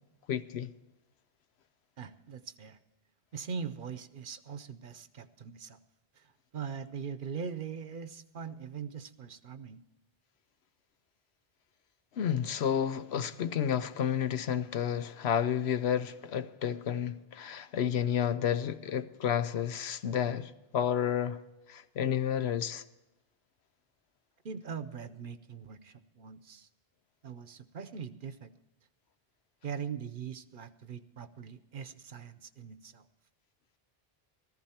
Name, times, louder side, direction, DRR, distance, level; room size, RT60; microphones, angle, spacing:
voice 1, 0.3-0.7 12.2-21.4 21.7-22.8, left 9 dB, 85° left, 1.0 m, -31 dB
voice 2, 2.0-2.8 3.3-5.8 6.2-9.8 24.4-26.7 27.2-28.5 29.6-33.0, right 6 dB, 60° right, 0.9 m, -41 dB
15.0 x 14.0 x 4.3 m
omnidirectional pair, 1.1 m